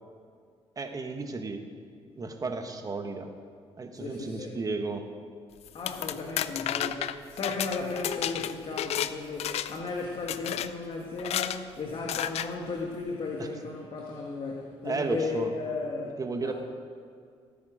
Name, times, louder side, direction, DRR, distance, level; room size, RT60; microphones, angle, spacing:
voice 1, 0.8-1.6 2.2-3.3 3.8-5.1 13.4-13.5 14.8-15.5 16.2-16.5, right 3 dB, 30° right, 6 dB, 1.4 m, -33 dB
voice 2, 3.9-4.5 5.7-16.5, left 3 dB, 50° left, -1 dB, 1.7 m, -35 dB
sound 1, 5.6-9.1 9.4-9.9 10.3-10.7 11.2-11.6 12.1-12.5, left 11 dB, 70° left, 0.5 m, -31 dB
17.0 x 9.4 x 5.1 m, 2.2 s
cardioid pair, 90°, 11 cm